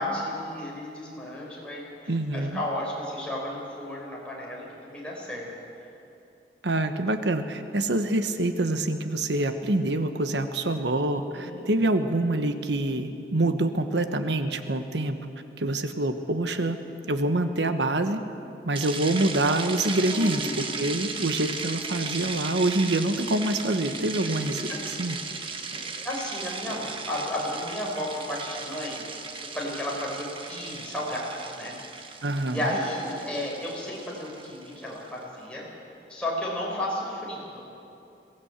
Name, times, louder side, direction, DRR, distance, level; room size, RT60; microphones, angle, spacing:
voice 1, 0.0-5.5 11.3-11.7 20.1-20.6 24.7-24.8 26.0-29.0 29.5-31.7 32.5-35.6 36.1-37.8, left 1 dB, 5° left, -4 dB, 5.0 m, -33 dB
voice 2, 2.1-2.6 6.6-15.1 15.6-16.8 17.1-18.2 18.6-24.7 25.0-25.2 32.2-32.7, right 2 dB, 85° right, 8 dB, 1.2 m, -26 dB
sound 1, 18.8-35.0, right 4 dB, 30° right, 1.2 m, -36 dB
sound 2, 22.0-22.7 22.9-23.6 23.9-25.4 25.7-26.3 26.7-26.9 27.2-27.3, right 1 dB, 45° right, 6.1 m, -49 dB
22.5 x 16.5 x 8.2 m, 2.7 s
head